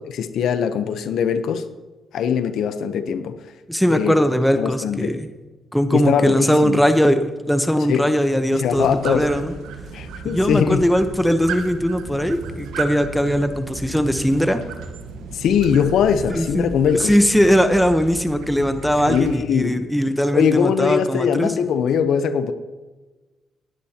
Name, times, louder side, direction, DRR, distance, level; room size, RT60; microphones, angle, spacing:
voice 1, 0.1-1.6 2.1-3.4 3.9-4.2 4.6-5.1 5.9-6.8 7.9-8.1 8.5-9.3 9.9-10.8 15.3-17.1 19.1-19.8 20.3-22.5, left 7 dB, 75° left, 10 dB, 0.8 m, -21 dB
voice 2, 3.7-5.3 5.7-9.5 10.3-14.6 16.3-16.7 17.0-21.5, equal, ahead, 8 dB, 1.0 m, -19 dB
sound 1, 8.7-19.4, right 5 dB, 90° right, 1.2 m, -34 dB
18.5 x 10.0 x 2.9 m, 1.2 s
cardioid pair, 90°, 0 cm